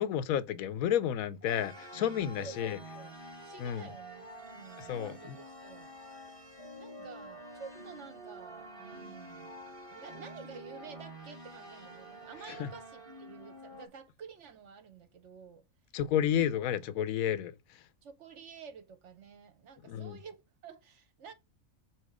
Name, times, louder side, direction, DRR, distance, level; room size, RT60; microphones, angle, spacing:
voice 1, 0.0-2.8 3.6-3.9 4.8-5.4 12.6-12.7 15.9-17.8 19.8-20.2, left 10 dB, 90° left, 1.1 m, -31 dB
sound 1, 1.4-13.9, right 1 dB, 25° right, 1.3 m, -48 dB
voice 2, 2.4-4.3 4.5-5.3 5.6-5.9 6.8-9.6 9.9-15.6 18.0-21.3, right 6 dB, 60° right, 1.1 m, -50 dB
7.4 x 2.9 x 4.8 m
omnidirectional pair, 1.4 m